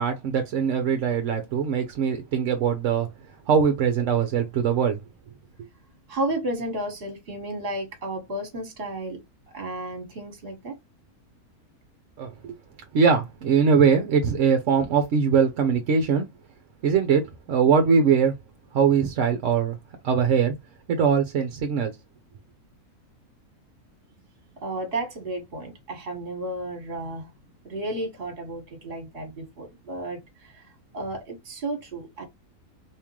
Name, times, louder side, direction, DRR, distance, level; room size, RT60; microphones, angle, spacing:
voice 1, 0.0-3.1 3.5-5.0 12.2-12.5 12.9-16.3 16.8-18.4 18.7-19.8 20.0-20.5 20.9-22.0, right 6 dB, 65° right, 0.9 m, -22 dB
voice 2, 6.1-9.2 9.5-10.7 24.6-32.2, right 1 dB, 40° right, 1.5 m, -33 dB
3.6 x 2.9 x 3.0 m
omnidirectional pair, 1.6 m